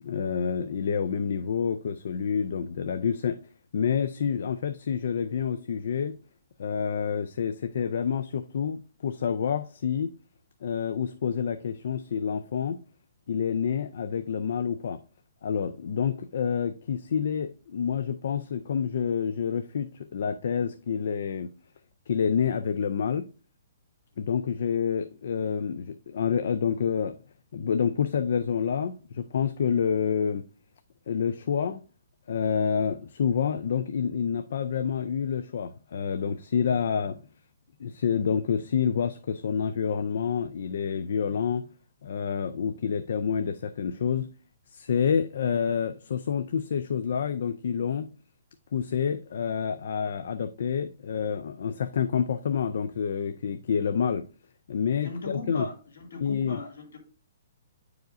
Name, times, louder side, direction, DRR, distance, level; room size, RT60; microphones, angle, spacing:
voice 1, 0.0-3.4 3.7-6.1 6.6-10.1 10.6-12.8 13.3-15.0 15.4-21.5 22.1-23.3 24.2-27.1 27.5-30.5 31.1-31.8 32.3-37.2 37.8-41.7 42.0-44.3 44.7-48.1 48.7-54.2 54.7-55.7 56.2-56.6, left 7 dB, 50° left, 0.3 m, -28 dB
voice 2, 55.0-55.7 56.0-57.0, left 2 dB, 85° left, 2.3 m, -37 dB
9.1 x 4.8 x 2.5 m
hypercardioid pair, 175°, 0 cm